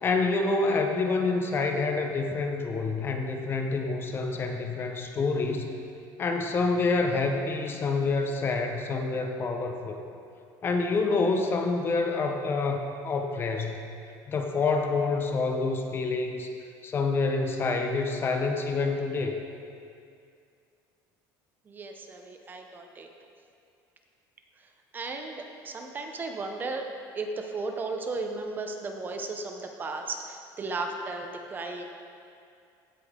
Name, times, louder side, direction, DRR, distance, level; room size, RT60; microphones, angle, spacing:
voice 1, 0.0-5.7 6.2-10.0 10.6-13.8 14.3-16.5 16.8-19.4, left 3 dB, 25° left, 4 dB, 0.6 m, -27 dB
voice 2, 21.7-23.1 24.9-26.9 27.2-31.8, right 3 dB, 25° right, 4 dB, 0.6 m, -35 dB
16.0 x 5.3 x 3.6 m, 2.4 s
cardioid pair, 160°, 8 cm